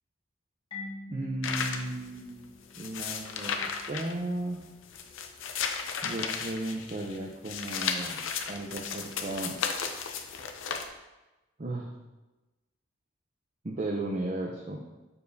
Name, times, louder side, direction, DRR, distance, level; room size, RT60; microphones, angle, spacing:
Marimba xylophone, 0.7-3.3, left 3 dB, 25° left, 1.1 m, -45 dB
voice 1, 1.1-2.5 2.7-4.6 6.0-8.2 8.5-9.6 11.6-11.9 13.6-14.8, right 2 dB, 35° right, 0 dB, 0.6 m, -35 dB
sound 1, 1.4-10.9, left 6 dB, 80° left, 0.6 m, -35 dB
6.9 x 6.8 x 2.7 m, 1.1 s
head